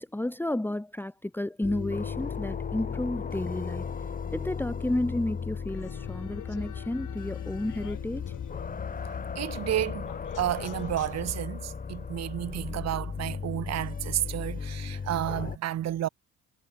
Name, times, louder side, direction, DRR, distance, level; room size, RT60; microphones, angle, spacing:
voice 1, 0.0-3.8 4.3-8.3, left 1 dB, 5° left, 1.4 m, -32 dB
sound 1, 1.6-10.5, left 18 dB, 80° left, 5.6 m, -46 dB
sound 2, 1.6-15.6, left 5 dB, 25° left, 1.2 m, -36 dB
sound 3, 5.7-11.4, left 11 dB, 60° left, 6.1 m, -42 dB
voice 2, 9.0-10.1 10.4-16.1, right 12 dB, 45° right, 0.9 m, -31 dB
cardioid pair, 100°, 36 cm